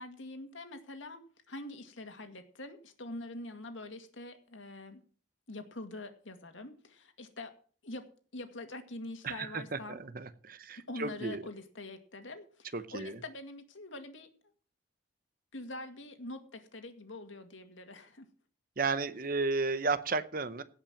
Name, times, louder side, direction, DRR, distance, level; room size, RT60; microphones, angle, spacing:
voice 1, 0.0-5.0 5.5-7.5 7.8-10.0 10.8-14.3 15.5-18.3, left 2 dB, 80° left, 7 dB, 2.1 m, -45 dB
voice 2, 9.2-11.4 12.7-13.2 18.8-20.6, right 4 dB, 45° right, 12 dB, 0.8 m, -33 dB
17.5 x 5.8 x 7.2 m, 0.43 s
head